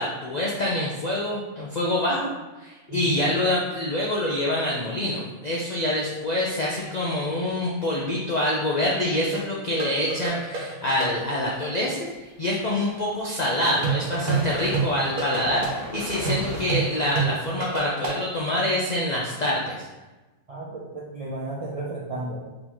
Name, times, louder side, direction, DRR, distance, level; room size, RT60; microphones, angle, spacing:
voice 1, 0.0-2.3 2.6-19.9, left 1 dB, 70° left, -4 dB, 0.4 m, -26 dB
voice 2, 2.9-3.3 20.5-22.4, right 2 dB, 60° right, -5 dB, 0.3 m, -33 dB
sound 1, 9.3-11.4 13.8-18.2, right 5 dB, 85° right, 1.4 m, -28 dB
sound 2, 12.7-17.8, left 2 dB, 85° left, 1.5 m, -39 dB
3.9 x 3.9 x 3.0 m, 1.1 s
omnidirectional pair, 1.5 m